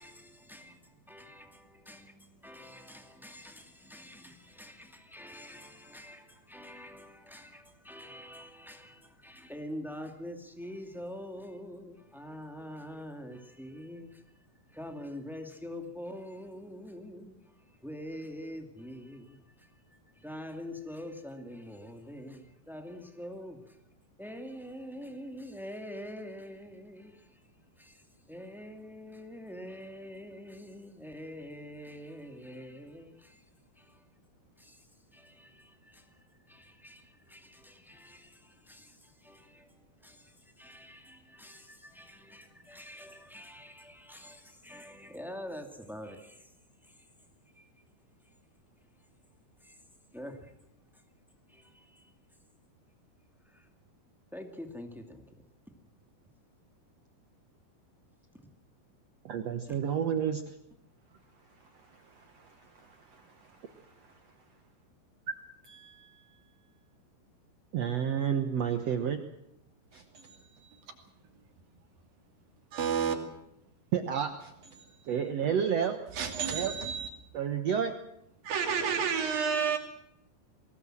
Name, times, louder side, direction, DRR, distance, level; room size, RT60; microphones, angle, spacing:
voice 1, 0.0-14.2 14.7-19.8 20.1-23.8 24.2-27.4 27.8-33.4 33.7-34.0 34.6-46.5 46.8-47.1 47.5-47.7 49.6-49.8 50.1-51.0 51.5-52.1 53.4-53.7 54.3-55.4, equal, ahead, 0.6 m, -46 dB
voice 2, 59.2-60.4 61.6-64.2 65.6-66.4 67.7-69.2 69.9-70.8 73.9-76.0 76.5-76.7 77.3-78.0, right 8 dB, 80° right, 1.4 m, -32 dB
voice 3, 72.7-73.2 76.1-77.1 78.4-79.8, right 6 dB, 60° right, 4.2 m, -30 dB
23.0 x 18.5 x 7.7 m
omnidirectional pair, 4.8 m